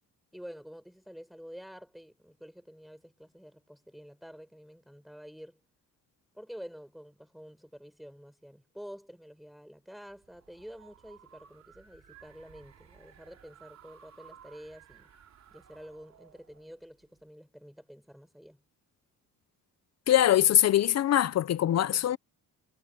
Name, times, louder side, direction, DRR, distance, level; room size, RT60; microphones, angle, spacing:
voice 1, 0.3-5.6 6.3-15.1 15.5-18.6, equal, ahead, 5.6 m, -49 dB
sound 1, 10.1-17.2, right 8 dB, 50° right, 4.1 m, -57 dB
voice 2, 20.1-22.2, left 12 dB, 50° left, 0.6 m, -23 dB
cardioid pair, 130°, 35 cm